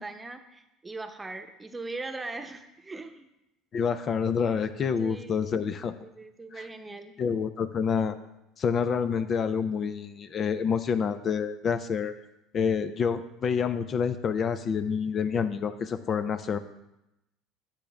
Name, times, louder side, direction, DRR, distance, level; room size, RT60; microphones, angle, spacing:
voice 1, 0.0-3.3 4.9-5.4 5.8-7.2, right 3 dB, 15° right, 7 dB, 1.0 m, -40 dB
voice 2, 3.7-5.9 6.5-6.6 7.2-8.2 8.6-12.1 12.5-16.6, left 6 dB, 40° left, 10 dB, 0.5 m, -28 dB
9.9 x 7.4 x 3.5 m, 0.90 s
hypercardioid pair, 75°, 0 cm